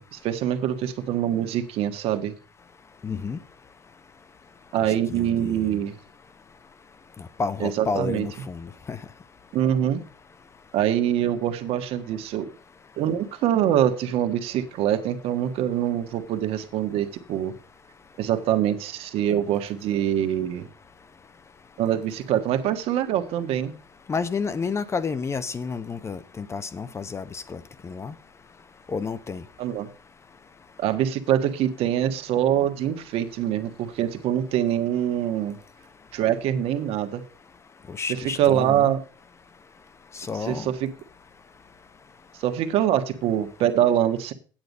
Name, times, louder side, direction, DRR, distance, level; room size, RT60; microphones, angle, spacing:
voice 1, 0.0-2.3 4.7-5.9 7.6-8.3 9.5-10.0 10.7-12.5 13.0-17.5 18.2-20.7 21.8-23.7 29.6-29.9 30.8-35.6 36.1-37.2 38.2-39.0 40.4-40.9 42.4-44.3, right 10 dB, 60° right, 1.5 m, -24 dB
voice 2, 3.0-3.4 5.1-5.7 7.4-9.0 24.1-28.1 28.9-29.4 37.9-38.9 40.1-40.7, left 5 dB, 25° left, 0.8 m, -30 dB
8.9 x 7.9 x 5.3 m
supercardioid pair, 95°, 11 cm